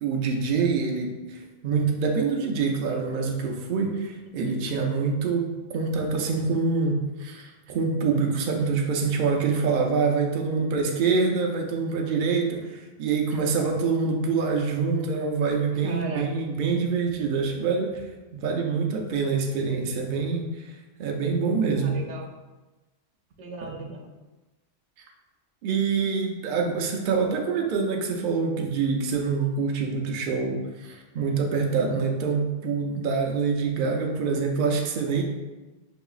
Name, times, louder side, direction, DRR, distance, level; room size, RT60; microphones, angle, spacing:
voice 1, 0.0-18.0 18.3-20.6 21.0-22.0 25.6-35.2, right 5 dB, 55° right, 2 dB, 0.6 m, -25 dB
voice 2, 15.8-16.3 21.8-22.3 23.4-24.2, right 2 dB, 80° right, 1 dB, 1.0 m, -36 dB
5.3 x 2.9 x 2.4 m, 1.1 s
omnidirectional pair, 1.3 m